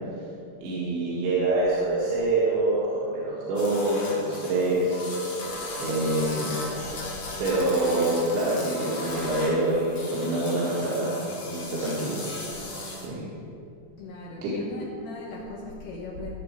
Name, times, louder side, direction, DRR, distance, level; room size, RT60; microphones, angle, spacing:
voice 1, 0.6-5.0 5.8-6.5 7.4-11.2 11.5-12.2 13.0-13.2 14.4-14.5, right 2 dB, 75° right, -7 dB, 3.9 m, -25 dB
sound 1, 3.5-13.1, left 2 dB, 55° left, 1.2 m, -36 dB
voice 2, 14.0-16.3, left 2 dB, 70° left, -4 dB, 3.1 m, -38 dB
15.5 x 7.2 x 4.7 m, 2.7 s
omnidirectional pair, 4.7 m